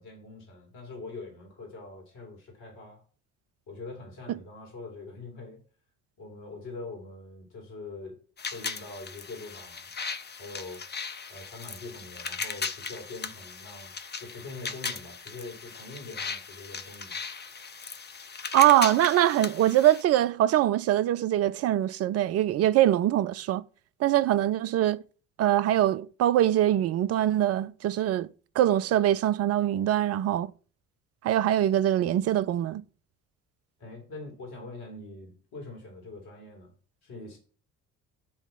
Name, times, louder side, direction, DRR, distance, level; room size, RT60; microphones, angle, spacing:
voice 1, 0.0-3.0 3.7-5.6 6.2-8.2 8.5-9.9 10.4-10.8 11.3-13.9 14.2-17.2 33.8-36.7 37.0-37.4, left 3 dB, 60° left, 2.7 m, -43 dB
sound 1, 8.4-20.0, left 5 dB, 25° left, 0.8 m, -38 dB
voice 2, 18.5-23.6 24.0-25.0 25.4-28.3 28.6-30.5 31.2-32.8, right 12 dB, 35° right, 0.4 m, -23 dB
8.7 x 3.0 x 5.6 m
figure-of-eight pair, 50°, 43 cm